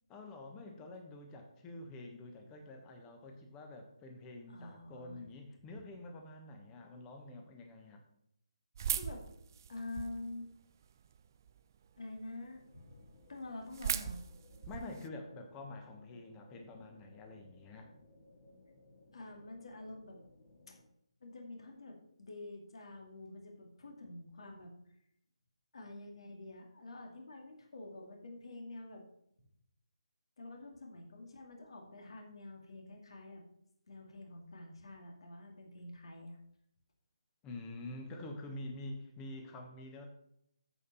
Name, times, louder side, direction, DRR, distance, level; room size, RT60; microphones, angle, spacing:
voice 1, 0.1-8.0 14.7-17.9 37.4-40.1, left 2 dB, 15° left, 4 dB, 1.3 m, -47 dB
voice 2, 4.5-5.2 8.9-9.2 9.7-10.5 12.0-13.0 13.3-14.2 19.1-20.2 20.7-20.8 21.2-24.7 25.7-29.0 30.4-33.4 33.9-36.4, left 2 dB, 55° left, 2 dB, 2.3 m, -47 dB
sound 1, 8.7-10.3 10.8-11.5 12.0-12.1 12.3-12.4 12.7-12.8 13.0-15.1, right 8 dB, 35° right, 0.4 m, -38 dB
sound 2, 12.5-20.8, left 2 dB, 35° left, 2.3 m, -62 dB
14.0 x 5.3 x 4.2 m, 0.74 s
figure-of-eight pair, 155°, 3 cm